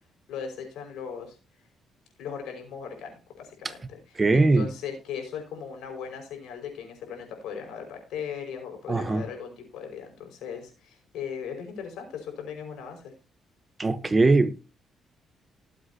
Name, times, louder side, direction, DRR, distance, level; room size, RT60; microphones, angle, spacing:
voice 1, 0.3-1.4 2.2-13.1, left 7 dB, 90° left, 5.3 m, -38 dB
voice 2, 4.2-4.7 8.9-9.2 13.8-14.6, right 3 dB, 25° right, 0.9 m, -21 dB
18.5 x 8.0 x 2.8 m
cardioid pair, 115°, 0 cm